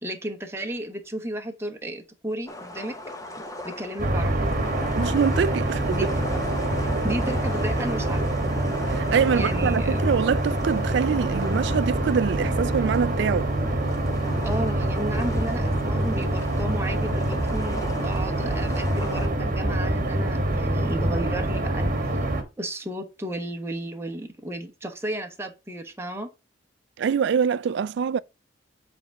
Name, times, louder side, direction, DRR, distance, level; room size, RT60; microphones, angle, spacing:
voice 1, 0.0-2.9 3.6-4.4 5.9-6.1 6.8-8.3 9.3-10.1 14.4-22.2 22.6-26.3, right 1 dB, 15° right, 0.9 m, -33 dB
sound 1, 2.5-19.3, left 2 dB, 20° left, 1.0 m, -38 dB
sound 2, 4.0-22.4, right 1 dB, 45° right, 1.2 m, -25 dB
voice 2, 5.0-5.8 8.9-13.5 27.0-28.2, right 7 dB, 65° right, 0.3 m, -24 dB
7.8 x 3.5 x 4.5 m
head